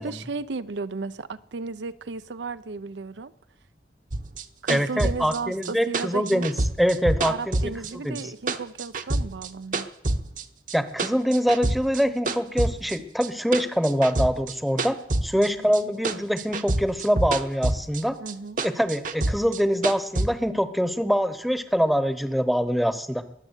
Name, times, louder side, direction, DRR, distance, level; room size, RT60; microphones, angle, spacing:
voice 1, 0.0-3.3 4.6-6.5 7.3-9.9 15.3-15.7 18.2-18.6, right 4 dB, 90° right, 0.6 m, -34 dB
sound 1, 4.1-8.2 8.5-10.4 10.7-12.0 12.3-15.8 16.0-18.0 18.3-20.3, right 2 dB, 45° right, 0.9 m, -27 dB
voice 2, 4.7-7.7 8.0-8.2 10.7-18.2 18.6-23.2, equal, ahead, 0.9 m, -24 dB
21.5 x 7.4 x 8.1 m
head